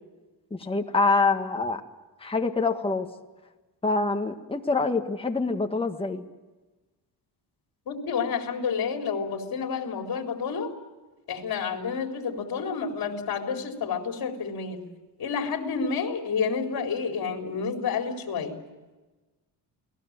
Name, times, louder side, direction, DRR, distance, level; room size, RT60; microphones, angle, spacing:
voice 1, 0.5-1.8 2.2-3.1 3.8-6.3, left 3 dB, 15° left, 4 dB, 1.6 m, -25 dB
voice 2, 7.9-10.7 11.3-14.8 15.2-18.6, left 5 dB, 60° left, 3 dB, 4.0 m, -29 dB
29.5 x 20.0 x 7.4 m, 1.2 s
cardioid pair, 135°, 41 cm